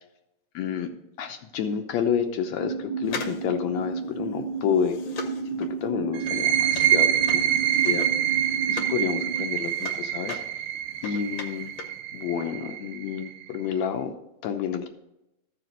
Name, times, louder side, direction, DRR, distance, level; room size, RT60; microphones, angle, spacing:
voice 1, 0.5-0.9 1.2-5.0 5.6-8.1 8.7-10.4 11.0-11.7 12.1-14.1 14.4-14.9, left 8 dB, 80° left, 6 dB, 1.6 m, -29 dB
sound 1, 2.5-9.4, right 4 dB, 70° right, 1.4 m, -33 dB
sound 2, 3.0-9.0 9.4-12.0 12.3-12.4, left 6 dB, 65° left, 1.9 m, -40 dB
sound 3, 6.1-13.6, right 11 dB, 85° right, 2.3 m, -26 dB
14.5 x 5.0 x 3.9 m, 0.88 s
omnidirectional pair, 4.1 m